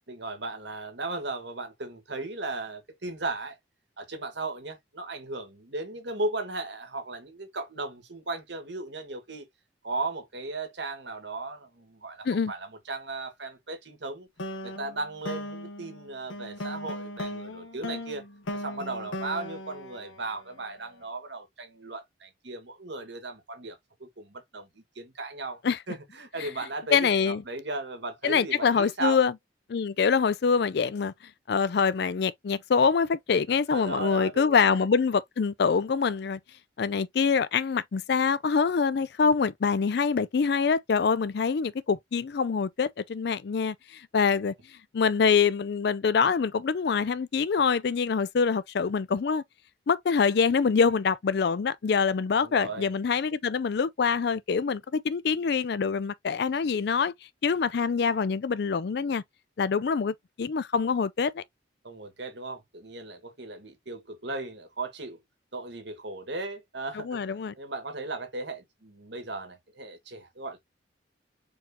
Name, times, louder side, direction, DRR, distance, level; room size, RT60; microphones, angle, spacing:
voice 1, 0.1-3.6 4.0-9.5 9.8-14.3 14.6-18.2 18.5-25.6 25.9-29.2 33.5-34.7 52.4-52.9 61.8-65.2 65.5-70.6, right 2 dB, 65° right, 1.7 m, -36 dB
sound 1, 14.4-20.8, left 1 dB, 85° left, 1.1 m, -38 dB
voice 2, 26.9-27.4 28.2-29.3 29.7-31.1 31.5-36.4 36.8-44.5 44.9-49.4 49.9-57.1 57.4-59.2 59.6-61.4 67.0-67.5, left 5 dB, 55° left, 0.4 m, -25 dB
4.7 x 3.6 x 2.7 m
head